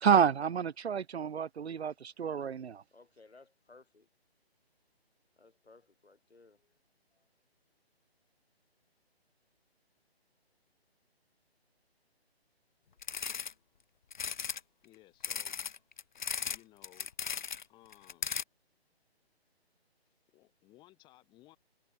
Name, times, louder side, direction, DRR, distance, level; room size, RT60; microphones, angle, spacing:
voice 1, 0.0-2.8, right 7 dB, 80° right, 0.6 m, -29 dB
voice 2, 2.9-4.1 5.4-6.8 7.1-7.3, left 3 dB, 70° left, 4.2 m, -60 dB
sound 1, 13.0-13.5 14.1-14.6 15.2-16.6 16.8-17.6 17.9-18.4, left 7 dB, 50° left, 0.4 m, -36 dB
voice 3, 14.8-15.8 16.5-17.1 17.7-18.3 20.1-21.6, left 17 dB, 15° left, 4.3 m, -60 dB
figure-of-eight pair, 145°, 32 cm